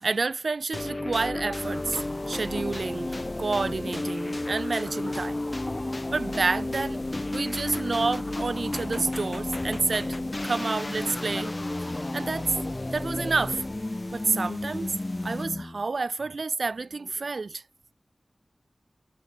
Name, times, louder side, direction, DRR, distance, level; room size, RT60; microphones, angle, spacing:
voice 1, 0.0-5.4 6.1-10.2 10.4-11.5 12.1-12.5 12.9-13.7 14.1-17.6, right 3 dB, 80° right, 2.2 m, -29 dB
sound 1, 0.7-15.8, left 2 dB, 35° left, 0.9 m, -32 dB
sound 2, 1.6-15.5, left 2 dB, 55° left, 7.6 m, -49 dB
wide cardioid pair, 55°, 0 cm